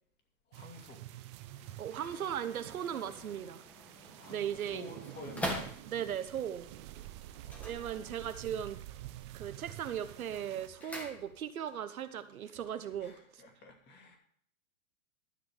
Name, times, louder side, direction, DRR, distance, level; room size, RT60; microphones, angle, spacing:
voice 1, 0.5-1.1 4.1-5.8 7.4-8.3 10.8-11.0 12.4-12.6 13.0-14.2, left 2 dB, 25° left, 2 dB, 2.6 m, -51 dB
sound 1, 0.5-10.7, right 14 dB, 20° right, 0.4 m, -49 dB
sound 2, 1.3-6.3 7.4-8.5 8.8-9.3 9.7-11.7 12.0-12.1, equal, 5° left, 1.7 m, -44 dB
sound 3, 1.4-13.2, right 3 dB, 60° right, 2.5 m, -63 dB
voice 2, 1.8-3.6 4.3-4.9 5.9-6.7 7.6-8.8 9.3-13.4, right 9 dB, 80° right, 12 dB, 1.2 m, -38 dB
12.5 x 6.1 x 6.6 m, 0.63 s
hypercardioid pair, 130°, 42 cm